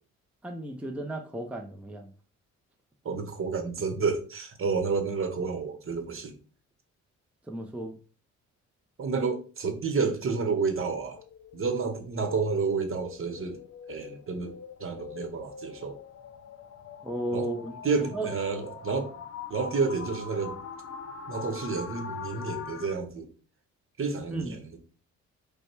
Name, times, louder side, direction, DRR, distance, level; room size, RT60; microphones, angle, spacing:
voice 1, 0.4-2.1 7.5-7.9 17.0-17.7 18.0-18.3 24.3-24.5, right 1 dB, 5° right, 0.6 m, -34 dB
voice 2, 3.0-6.3 9.0-11.2 11.5-13.6 13.9-16.0 17.3-17.5 17.8-19.1 19.5-20.6 21.3-23.3 24.0-24.8, right 4 dB, 45° right, 1.1 m, -30 dB
sound 1, 9.7-22.9, left 7 dB, 50° left, 0.8 m, -43 dB
5.0 x 2.3 x 4.6 m
cardioid pair, 90°, 30 cm